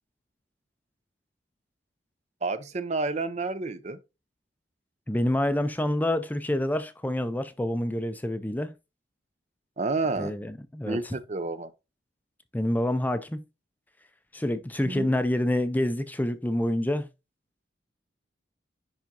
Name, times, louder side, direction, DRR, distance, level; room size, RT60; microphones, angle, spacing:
voice 1, 2.4-4.0 9.8-10.3 10.9-11.7 14.8-15.1, right 3 dB, 35° right, 0.5 m, -30 dB
voice 2, 5.1-8.7 10.2-11.1 12.5-13.4 14.3-17.1, left 1 dB, 10° left, 0.5 m, -27 dB
10.5 x 3.6 x 2.7 m
head